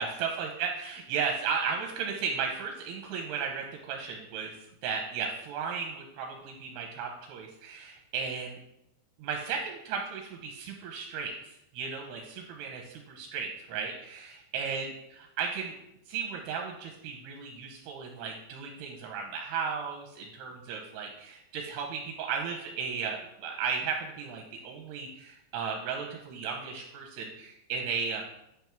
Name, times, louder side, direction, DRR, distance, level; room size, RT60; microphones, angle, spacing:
voice 1, 0.0-4.5 4.8-8.6 9.2-14.9 15.4-15.8 16.1-28.2, right 6 dB, 80° right, 1 dB, 2.7 m, -35 dB
9.3 x 3.5 x 5.8 m, 0.84 s
omnidirectional pair, 5.1 m